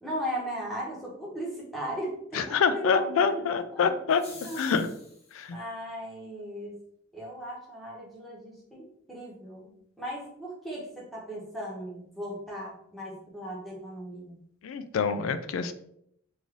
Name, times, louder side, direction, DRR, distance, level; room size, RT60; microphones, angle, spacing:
voice 1, 0.0-3.4 3.7-3.9 4.4-4.6 5.5-6.7 7.1-9.7 10.0-14.3, equal, ahead, -5 dB, 0.8 m, -37 dB
voice 2, 2.3-4.2 4.6-4.9 5.3-5.6 14.6-15.7, left 6 dB, 75° left, 11 dB, 0.3 m, -26 dB
sound 1, 4.1-5.4, left 3 dB, 30° left, 0.9 m, -48 dB
3.2 x 2.6 x 3.6 m, 0.71 s
head